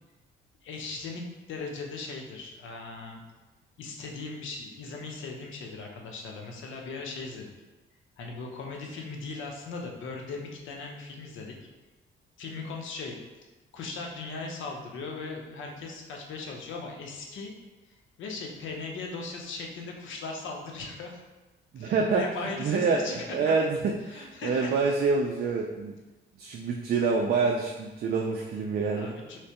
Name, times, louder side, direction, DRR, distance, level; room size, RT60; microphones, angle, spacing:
voice 1, 0.6-3.2 3.8-7.5 8.2-11.6 12.4-13.5 13.7-17.5 17.8-21.2 21.8-23.7 24.0-24.8 28.6-29.4, left 3 dB, 75° left, 1 dB, 0.7 m, -38 dB
voice 2, 21.7-22.2 22.6-23.0 23.3-23.8 24.1-25.9 26.4-29.1, right 4 dB, 50° right, 1 dB, 0.4 m, -26 dB
3.2 x 3.2 x 2.9 m, 1.2 s
cardioid pair, 90°, 20 cm